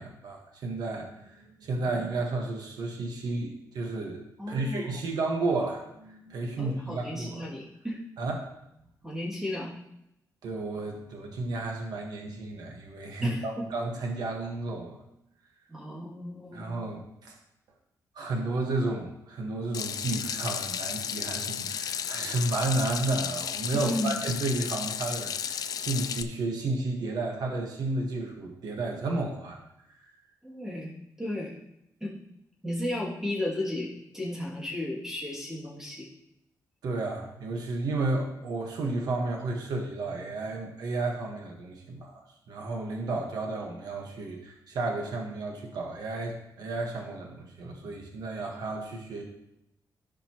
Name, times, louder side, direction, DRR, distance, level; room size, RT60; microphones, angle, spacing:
voice 1, 0.0-7.5 8.2-8.5 10.4-14.9 16.5-17.3 18.1-29.6 36.8-42.2 42.5-49.2, right 2 dB, 70° right, 1 dB, 1.4 m, -32 dB
voice 2, 4.4-5.0 6.6-8.0 9.0-9.7 13.2-13.6 15.7-16.6 23.7-24.2 30.4-30.9 31.2-31.6 32.0-32.1 32.6-36.1, left 1 dB, 5° right, -5 dB, 2.5 m, -34 dB
Water tap faucet / Sink (filling or washing), 19.7-26.2, left 8 dB, 65° left, 0.5 m, -33 dB
15.0 x 5.3 x 3.0 m, 0.80 s
wide cardioid pair, 150°, 7 cm